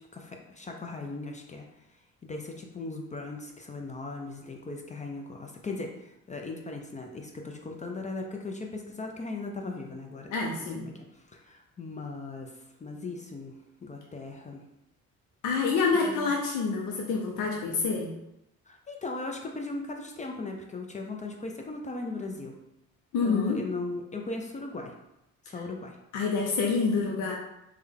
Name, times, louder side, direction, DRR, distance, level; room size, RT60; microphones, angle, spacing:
voice 1, 0.1-1.7 2.2-10.3 10.8-14.6 16.1-16.3 18.7-22.6 23.2-24.9 25.4-26.0, left 3 dB, 25° left, 2 dB, 0.4 m, -38 dB
voice 2, 10.3-10.9 15.4-18.1 23.1-23.6 26.1-27.3, left 4 dB, 85° left, -1 dB, 0.5 m, -27 dB
3.2 x 2.2 x 3.5 m, 0.87 s
cardioid pair, 90°, 30 cm